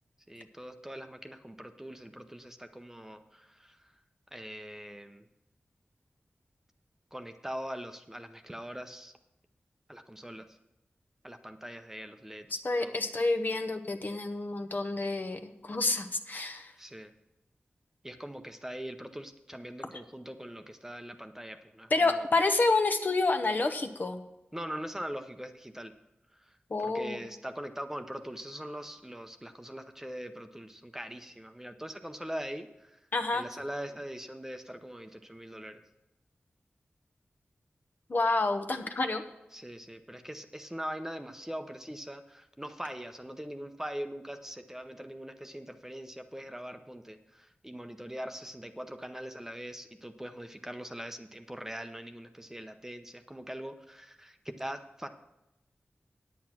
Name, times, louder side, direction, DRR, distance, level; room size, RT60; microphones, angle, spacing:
voice 1, 0.3-3.9 4.3-5.3 7.1-9.1 9.9-10.6 11.2-13.0 16.8-17.1 18.0-22.3 24.5-25.9 26.3-26.6 26.8-35.8 39.5-55.1, equal, 10° right, 7 dB, 0.7 m, -42 dB
voice 2, 12.6-16.7 21.9-24.2 26.7-27.2 33.1-33.4 38.1-39.2, left 3 dB, 50° left, 6 dB, 1.0 m, -28 dB
9.2 x 8.3 x 6.0 m, 0.90 s
wide cardioid pair, 70°, 4 cm